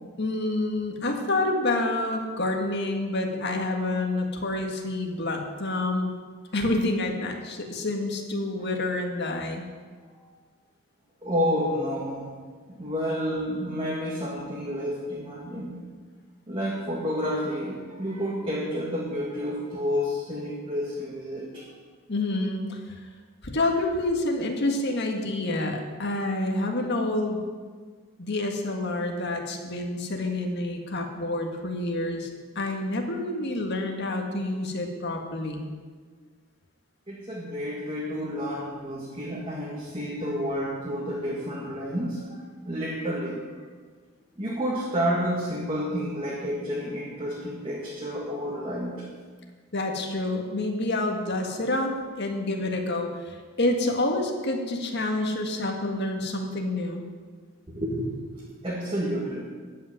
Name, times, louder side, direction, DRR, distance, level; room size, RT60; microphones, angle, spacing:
voice 1, 0.2-6.1 6.5-9.6 22.1-22.8 23.4-27.4 28.2-32.3 32.6-35.7 49.7-57.1, left 2 dB, 50° left, 2 dB, 1.8 m, -28 dB
voice 2, 11.2-12.3 12.7-15.8 16.5-21.6 37.1-43.4 44.4-49.0 57.7-58.2 58.5-59.4, equal, 25° right, -5 dB, 2.0 m, -30 dB
13.0 x 6.2 x 9.4 m, 1.5 s
head